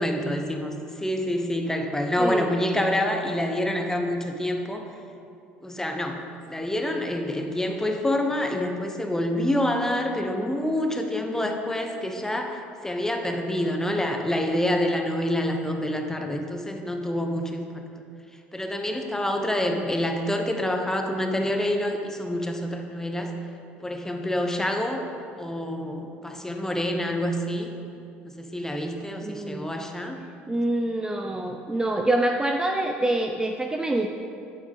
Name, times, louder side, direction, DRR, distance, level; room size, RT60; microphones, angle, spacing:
voice 1, 0.0-4.9 5.6-17.8 18.5-23.3 23.8-25.0 25.4-27.7 28.2-30.2, left 1 dB, 10° left, 4 dB, 1.0 m, -27 dB
voice 2, 2.2-2.6 19.7-19.9 29.2-29.8 30.5-34.1, right 1 dB, 15° right, 3 dB, 0.5 m, -26 dB
8.9 x 7.7 x 3.6 m, 2.5 s
hypercardioid pair, 65°, 6 cm